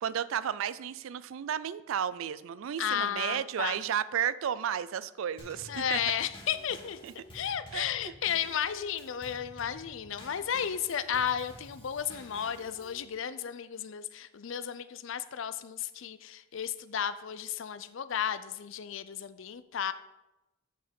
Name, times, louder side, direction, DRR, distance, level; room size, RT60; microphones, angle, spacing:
voice 1, 0.0-6.0 7.0-7.1 7.7-7.9, right 9 dB, 75° right, 17 dB, 0.3 m, -33 dB
voice 2, 2.8-3.8 5.7-7.0 7.3-19.9, left 8 dB, 65° left, 14 dB, 0.4 m, -33 dB
Drum kit / Snare drum / Bass drum, 5.4-13.1, equal, 25° left, 1.9 m, -51 dB
7.6 x 5.8 x 5.2 m, 0.99 s
head